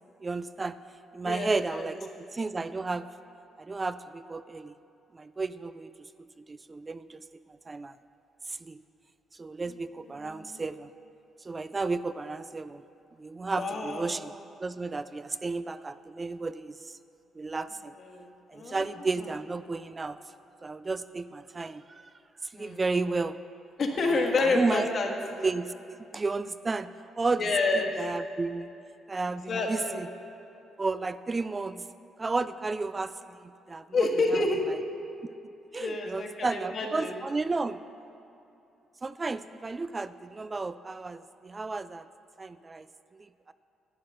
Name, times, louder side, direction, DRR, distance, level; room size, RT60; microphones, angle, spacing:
voice 1, 0.2-0.8 1.1-3.1 3.6-4.7 5.1-6.1 6.4-7.9 8.5-8.8 9.4-10.9 11.4-12.8 13.2-14.3 14.6-17.0 17.4-17.9 18.5-20.2 20.6-22.1 22.4-23.4 24.1-24.9 25.2-25.7 26.1-27.4 28.0-28.7 29.1-30.1 30.8-31.9 32.2-33.8 34.3-34.4 34.7-34.8 35.7-37.8 39.0-42.1 42.4-42.9 43.1-43.5, right 3 dB, 25° right, 13 dB, 0.3 m, -33 dB
voice 2, 1.2-1.9 10.2-10.6 13.5-14.1 18.0-18.8 22.5-22.8 23.8-25.1 27.4-27.9 29.5-30.0 33.9-34.6 35.7-37.1, left 3 dB, 55° left, 2 dB, 1.7 m, -29 dB
11.5 x 9.0 x 6.4 m, 2.8 s
cardioid pair, 90°, 0 cm